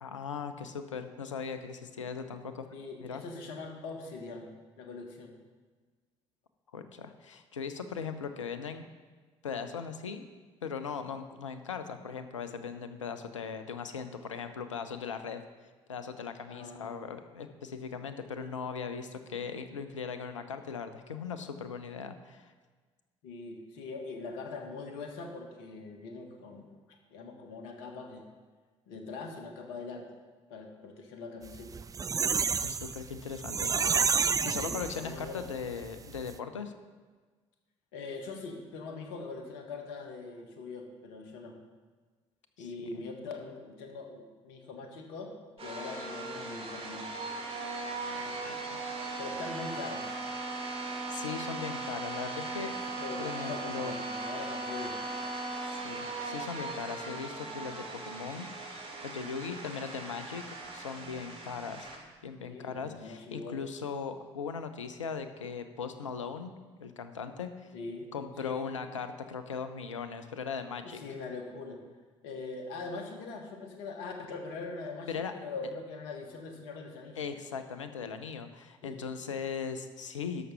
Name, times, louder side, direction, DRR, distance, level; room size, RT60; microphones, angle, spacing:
voice 1, 0.0-2.7 3.0-3.2 6.7-8.9 9.4-10.3 10.6-15.4 15.9-22.5 32.6-36.7 42.6-42.7 42.9-43.0 48.2-48.8 50.8-52.8 53.2-53.9 55.8-58.5 59.0-61.9 62.2-66.5 66.8-67.7 68.1-71.0 75.1-75.3 77.2-80.5, left 6 dB, 80° left, 9 dB, 0.7 m, -39 dB
voice 2, 2.7-4.5 4.8-5.3 16.5-17.0 23.2-26.7 27.1-28.2 28.9-30.1 30.5-31.7 34.6-35.4 37.9-41.5 42.6-47.1 49.2-50.1 53.0-55.0 62.4-63.6 67.7-68.1 68.4-68.7 70.8-71.8 72.2-77.2 78.8-79.0, left 3 dB, 65° left, 4 dB, 1.5 m, -42 dB
sound 1, 31.5-35.4 35.8-35.9 36.2-36.3, right 6 dB, 20° right, 0.4 m, -29 dB
sound 2, 45.6-62.0, right 3 dB, 40° right, 2.6 m, -38 dB
12.5 x 6.2 x 5.7 m, 1.4 s
figure-of-eight pair, 50°, 16 cm